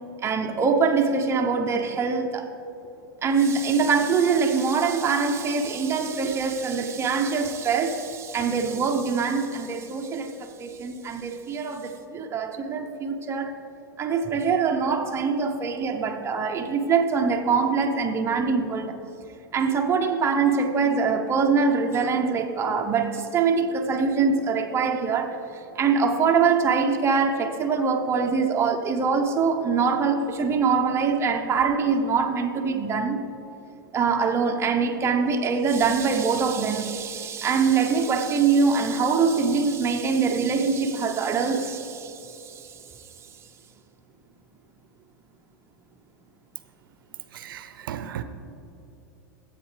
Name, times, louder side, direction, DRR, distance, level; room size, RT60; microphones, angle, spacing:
voice 1, 0.2-2.5 3.2-13.5 14.0-19.0 19.5-25.4 25.8-33.2 33.9-42.4, right 5 dB, 25° right, 0.8 m, -23 dB
voice 2, 47.3-48.2, right 10 dB, 80° right, 0.6 m, -35 dB
15.0 x 8.1 x 3.3 m
hypercardioid pair, 105°, 11 cm